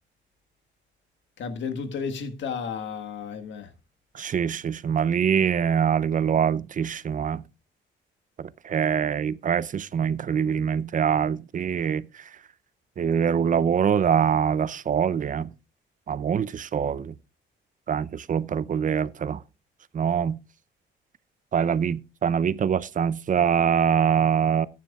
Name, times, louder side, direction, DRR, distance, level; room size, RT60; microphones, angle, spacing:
voice 1, 1.4-3.7, left 6 dB, 70° left, 1.6 m, -32 dB
voice 2, 4.1-7.4 8.4-12.1 13.0-15.5 16.1-17.1 17.9-19.4 19.9-20.4 21.5-24.7, right 7 dB, 40° right, 0.6 m, -24 dB
14.5 x 10.5 x 2.4 m
cardioid pair, 90°, 20 cm